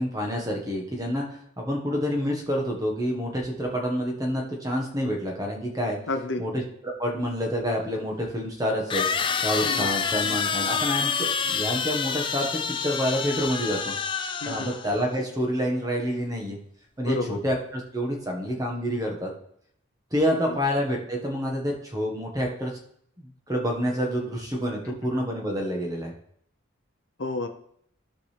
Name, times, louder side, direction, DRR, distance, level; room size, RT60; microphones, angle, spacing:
voice 1, 0.0-6.0 6.4-9.1 9.4-13.9 14.4-16.6 17.0-19.3 20.1-22.7 23.2-26.1, equal, 15° right, 0 dB, 1.4 m, -28 dB
voice 2, 6.1-6.4 9.6-9.9 14.4-14.7 17.0-17.4 20.5-20.6 24.9-25.0 27.2-27.5, left 2 dB, 60° left, 6 dB, 0.7 m, -30 dB
sound 1, 7.3-7.4 8.9-15.0, left 6 dB, 25° left, 0.4 m, -27 dB
15.0 x 5.2 x 3.4 m, 0.69 s
head